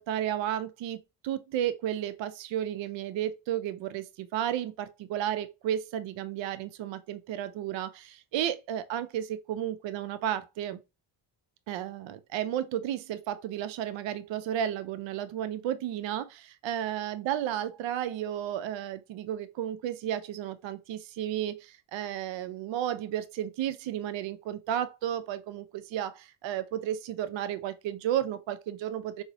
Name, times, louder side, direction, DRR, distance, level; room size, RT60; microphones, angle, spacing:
voice 1, 0.0-10.8 11.7-29.2, right 11 dB, 65° right, 0.5 m, -33 dB
3.8 x 2.1 x 2.6 m
supercardioid pair, 50°, 49 cm